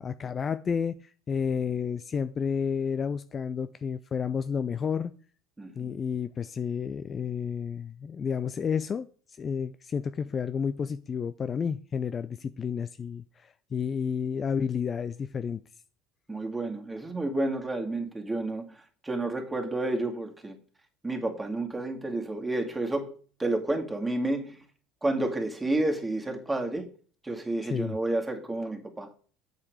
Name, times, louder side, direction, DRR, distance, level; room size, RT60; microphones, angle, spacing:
voice 1, 0.0-5.1 5.8-9.1 9.4-15.6 27.6-28.0, left 6 dB, 30° left, 0.5 m, -31 dB
voice 2, 5.6-5.9 16.3-18.6 19.0-20.6 21.0-23.1 23.4-24.6 25.0-26.9 27.2-29.1, right 2 dB, 10° right, 2.3 m, -30 dB
8.4 x 6.7 x 4.8 m
hypercardioid pair, 75°, 0 cm